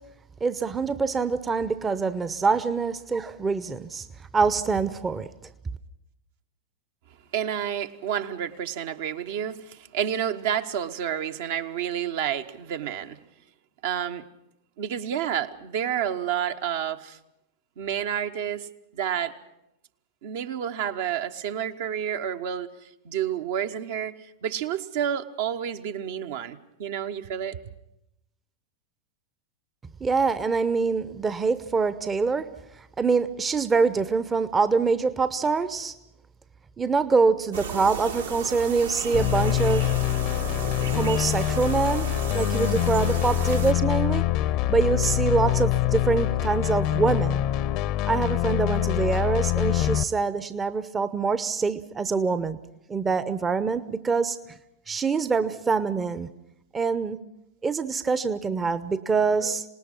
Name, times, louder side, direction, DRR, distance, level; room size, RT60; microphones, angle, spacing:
voice 1, 0.4-4.0 4.3-5.3 30.0-32.5 33.0-35.9 36.8-39.9 40.9-42.1 42.3-44.2 44.7-47.4 48.1-52.6 52.9-54.6 54.9-56.3 56.7-57.2 57.6-59.6, right 4 dB, 15° right, 14 dB, 0.8 m, -25 dB
voice 2, 7.3-13.2 13.8-14.2 14.8-17.2 17.8-18.7 18.9-19.3 20.2-22.7 23.0-24.1 24.4-27.6, right 9 dB, 55° right, 6 dB, 1.1 m, -29 dB
sound 1, 37.5-43.7, right 6 dB, 70° right, 2.0 m, -34 dB
sound 2, 39.1-50.0, left 14 dB, 45° left, 0.9 m, -25 dB
26.5 x 19.5 x 6.2 m, 0.83 s
figure-of-eight pair, 90°, 0 cm